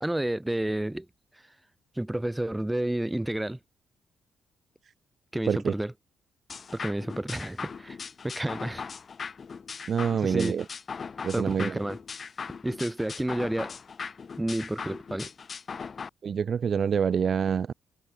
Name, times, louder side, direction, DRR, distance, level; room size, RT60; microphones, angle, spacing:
voice 1, 0.0-1.1 2.0-3.6 5.3-5.9 6.7-8.0 8.2-8.8 10.2-10.5 11.3-12.0 12.6-13.8 14.4-15.3, right 1 dB, 10° right, 2.1 m, -30 dB
sound 1, 6.5-16.1, left 5 dB, 40° left, 3.7 m, -39 dB
voice 2, 9.9-10.6 11.2-11.8 16.2-17.7, right 7 dB, 50° right, 0.8 m, -26 dB
cardioid pair, 90°, 0 cm